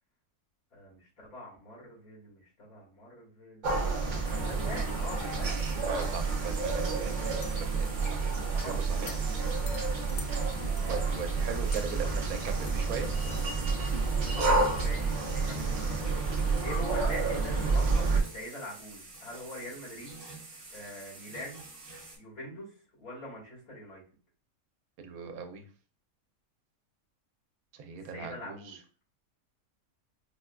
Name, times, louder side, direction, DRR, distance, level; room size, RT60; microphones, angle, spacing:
voice 1, 0.7-5.6 8.5-9.4 14.2-20.2 20.7-21.6 22.2-22.7 23.0-24.0 27.9-28.8, left 1 dB, 80° left, -6 dB, 2.2 m, -44 dB
sound 1, 3.6-18.2, right 4 dB, 65° right, 0.4 m, -29 dB
sound 2, 4.2-22.2, right 3 dB, 30° right, 0.8 m, -48 dB
voice 2, 5.9-8.2 8.6-9.1 10.9-13.1 25.0-25.6 27.8-28.8, right 6 dB, 85° right, 5 dB, 1.1 m, -39 dB
sound 3, 7.4-7.5 8.0-8.1 8.5-9.4 9.7-11.9 12.4-12.5 12.7-12.8 13.3-13.5 13.7-14.7, left 7 dB, 65° left, 0.7 m, -47 dB
4.8 x 2.2 x 2.3 m, 0.39 s
omnidirectional pair, 1.5 m